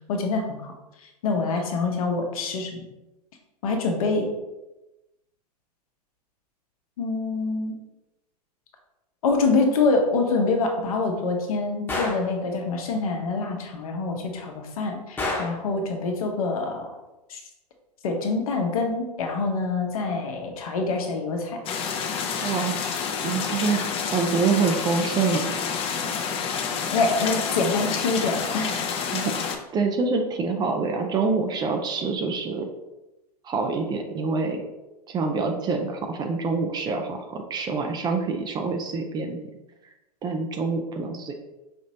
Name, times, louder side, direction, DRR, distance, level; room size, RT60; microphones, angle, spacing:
voice 1, 0.1-0.7 1.2-2.8 3.6-4.3 7.0-7.8 9.2-16.9 17.3-17.4 18.0-21.6 26.9-28.9, left 3 dB, 60° left, 3 dB, 0.9 m, -25 dB
Gunshot gunfire, 11.9-12.3 15.2-15.6, left 2 dB, 10° left, 1.0 m, -28 dB
sound 1, 21.7-29.6, left 6 dB, 30° left, 0.5 m, -29 dB
voice 2, 22.4-25.5 29.1-32.7 33.4-34.6 35.1-39.4 40.2-41.3, right 4 dB, 20° right, 4 dB, 0.4 m, -26 dB
5.1 x 3.0 x 2.8 m, 0.99 s
figure-of-eight pair, 100°, 21 cm